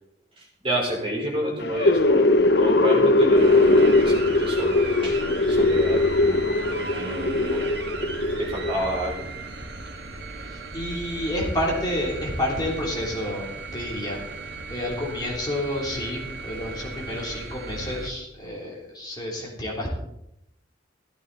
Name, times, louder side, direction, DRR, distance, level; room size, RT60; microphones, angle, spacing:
voice 1, 0.4-7.6 8.0-8.1 8.4-9.3, equal, 30° right, -2 dB, 4.5 m, -30 dB
sound 1, 1.6-8.8, left 2 dB, 60° left, 0.7 m, -20 dB
sound 2, 3.3-18.1, right 2 dB, 60° right, 1.7 m, -36 dB
voice 2, 10.7-14.2 14.7-19.9, left 1 dB, 20° left, -3 dB, 3.5 m, -29 dB
15.0 x 15.0 x 4.2 m, 0.82 s
head